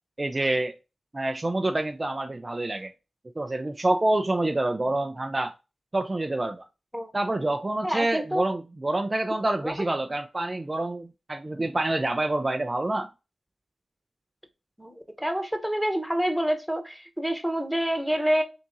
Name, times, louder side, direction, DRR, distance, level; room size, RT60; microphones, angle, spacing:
voice 1, 0.2-0.7 1.1-2.9 3.4-5.5 5.9-6.6 7.1-13.1, right 2 dB, 35° right, 0.4 m, -27 dB
voice 2, 7.8-8.5 9.6-9.7 14.8-18.4, equal, ahead, 1.0 m, -27 dB
3.6 x 2.8 x 3.8 m
cardioid pair, 40°, 0 cm